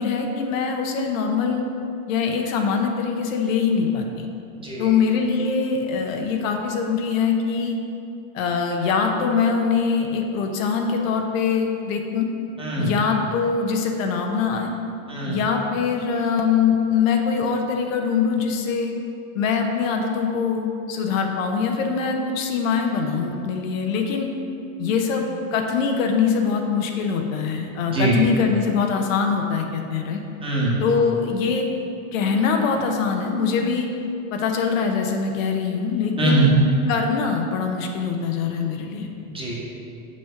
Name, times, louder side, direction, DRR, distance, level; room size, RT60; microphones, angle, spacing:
voice 1, 0.0-1.6 2.1-4.3 4.8-7.8 8.3-12.3 12.8-14.7 15.3-18.9 19.3-24.3 24.8-30.2 30.8-31.7 32.1-33.9 34.3-36.5 36.9-39.1, left 5 dB, 65° left, 3 dB, 1.0 m, -23 dB
voice 2, 12.6-12.9 15.1-15.3 27.9-28.1 30.4-30.8 36.2-36.5 39.2-39.6, right 3 dB, 15° right, -5 dB, 1.4 m, -22 dB
6.1 x 4.4 x 5.7 m, 2.6 s
supercardioid pair, 125°, 42 cm